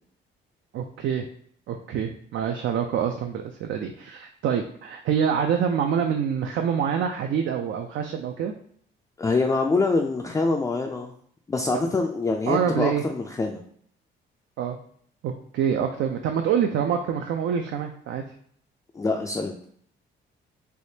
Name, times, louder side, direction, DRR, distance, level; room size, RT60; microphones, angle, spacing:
voice 1, 0.7-1.3 1.7-8.5 12.5-13.0 14.6-14.8 15.2-18.2, right 8 dB, 70° right, 4 dB, 0.4 m, -26 dB
voice 2, 9.2-11.1 11.5-13.6 18.9-19.6, left 3 dB, 15° left, 2 dB, 0.3 m, -25 dB
3.4 x 3.0 x 2.7 m, 0.62 s
cardioid pair, 90°, 20 cm